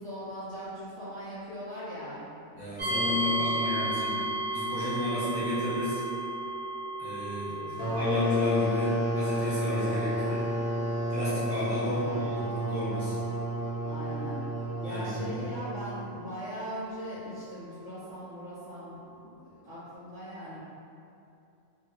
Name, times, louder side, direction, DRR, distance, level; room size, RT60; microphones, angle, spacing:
voice 1, 0.0-3.9 7.4-8.0 9.8-10.4 11.8-12.2 13.8-14.4 14.8-20.6, equal, 70° right, -13 dB, 1.1 m, -41 dB
voice 2, 2.5-4.2 4.5-6.0 7.0-7.6 7.9-10.5 11.1-13.1 14.8-15.3, left 1 dB, 20° left, -14 dB, 1.2 m, -32 dB
sound 1, 2.8-17.6, right 1 dB, 45° right, 1.0 m, -36 dB
sound 2, 7.8-16.2, equal, 80° left, 1.2 m, -31 dB
2.8 x 2.5 x 2.9 m, 2.6 s
omnidirectional pair, 1.4 m